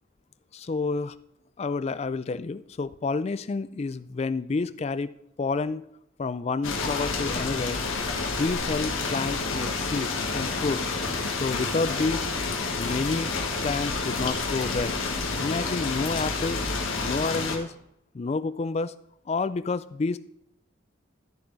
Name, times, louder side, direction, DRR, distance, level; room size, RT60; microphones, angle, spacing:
voice 1, 0.5-1.1 1.6-5.1 5.4-5.8 6.2-7.8 8.3-10.9 11.4-12.3 12.7-13.4 13.6-15.0 15.4-16.6 17.0-17.7 18.1-18.9 19.3-20.2, left 4 dB, 30° left, 15 dB, 0.3 m, -29 dB
sound 1, 6.6-17.6, left 4 dB, 85° left, 1.5 m, -29 dB
12.5 x 7.0 x 4.0 m, 0.76 s
head